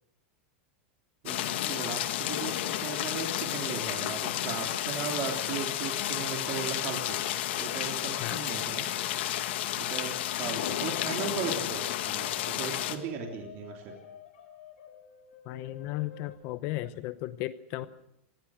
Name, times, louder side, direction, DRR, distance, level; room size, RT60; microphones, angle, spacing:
voice 1, 1.2-7.2 7.6-8.9 9.8-13.8, right 6 dB, 35° right, 1 dB, 3.3 m, -37 dB
sound 1, 1.3-13.0, left 13 dB, 60° left, 2.0 m, -32 dB
sound 2, 12.0-16.4, left 8 dB, 75° left, 4.7 m, -50 dB
voice 2, 15.5-17.9, left 16 dB, 35° left, 13 dB, 0.8 m, -35 dB
26.5 x 20.0 x 6.4 m, 0.81 s
supercardioid pair, 170°, 7 cm